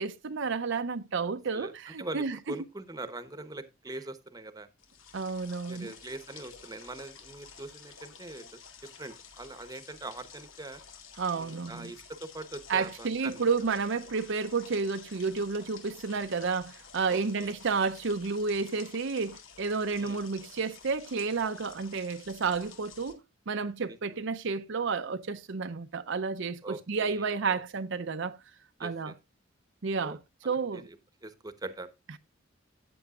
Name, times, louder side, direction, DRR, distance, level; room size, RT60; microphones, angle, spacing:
voice 1, 0.0-2.4 5.1-5.9 11.2-11.9 12.7-23.2 23.5-28.4 28.8-29.1 29.8-30.2 30.4-30.8, right 4 dB, 65° right, 0.6 m, -31 dB
voice 2, 2.0-4.7 5.7-8.6 9.0-10.8 11.3-13.5 17.1-17.5 20.0-20.2 23.9-24.0 26.6-27.6 28.8-29.1 30.0-30.2 30.4-31.0 31.2-31.9, right 2 dB, 20° right, 1.0 m, -42 dB
sound 1, 4.8-23.1, left 6 dB, 80° left, 2.1 m, -51 dB
14.0 x 8.6 x 2.4 m
head